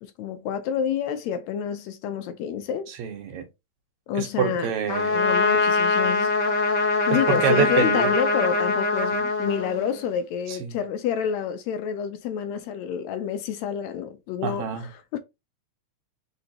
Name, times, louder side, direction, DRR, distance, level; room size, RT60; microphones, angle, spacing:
voice 1, 0.0-2.9 4.1-4.7 5.1-6.3 7.1-15.2, left 8 dB, 80° left, 1.7 m, -28 dB
voice 2, 2.9-3.5 4.2-5.2 7.1-8.1 10.5-10.8 14.4-14.9, right 8 dB, 75° right, 2.2 m, -27 dB
Trumpet, 4.9-10.2, left 3 dB, 65° left, 1.1 m, -23 dB
4.3 x 3.9 x 2.8 m
omnidirectional pair, 3.4 m